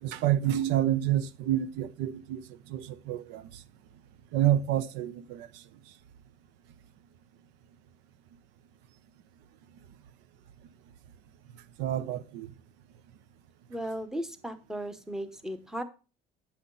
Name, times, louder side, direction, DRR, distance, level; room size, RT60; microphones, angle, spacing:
voice 1, 0.0-2.4 2.7-3.6 4.3-5.6 11.8-12.5, right 12 dB, 85° right, 0.7 m, -28 dB
voice 2, 13.7-15.8, right 1 dB, 5° right, 0.8 m, -36 dB
8.6 x 5.7 x 3.8 m
cardioid pair, 145°, 17 cm